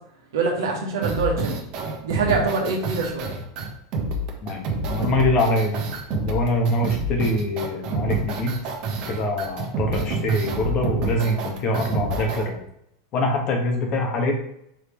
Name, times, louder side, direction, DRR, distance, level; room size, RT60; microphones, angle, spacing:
voice 1, 0.3-1.6 2.0-3.3, right 4 dB, 75° right, 0 dB, 1.2 m, -24 dB
sound 1, 1.0-12.4, right 2 dB, 50° right, 1.0 m, -28 dB
voice 2, 4.4-5.8 6.1-8.6 8.9-12.6 13.1-14.3, left 1 dB, 40° left, 2 dB, 1.2 m, -24 dB
4.8 x 3.2 x 3.2 m, 0.74 s
hypercardioid pair, 100°, 2 cm